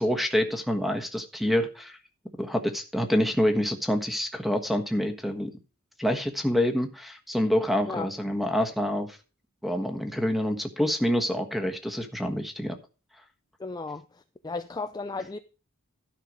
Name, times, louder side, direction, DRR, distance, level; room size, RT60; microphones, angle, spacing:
voice 1, 0.0-2.0 2.4-5.5 6.0-9.2 9.6-12.8, equal, ahead, 1.3 m, -27 dB
voice 2, 13.6-15.4, left 3 dB, 20° left, 0.4 m, -35 dB
12.5 x 5.7 x 4.9 m
head